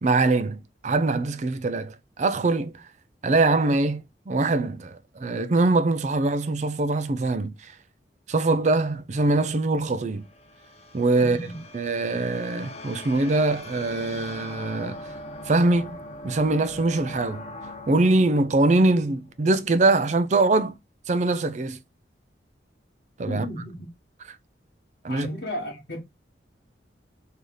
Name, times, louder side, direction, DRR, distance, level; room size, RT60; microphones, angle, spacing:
voice 1, 0.0-2.8 3.2-7.7 8.3-10.2 10.9-11.4 11.7-15.0 15.5-16.0 16.2-17.4 17.9-20.8 21.1-21.8 23.2-23.4 25.0-25.3, right 2 dB, 40° right, 0.4 m, -23 dB
sound 1, 9.6-19.9, left 2 dB, 35° left, 0.6 m, -42 dB
voice 2, 11.2-11.6 23.3-23.9 25.1-26.0, equal, 75° left, 1.4 m, -34 dB
3.2 x 2.7 x 3.8 m
head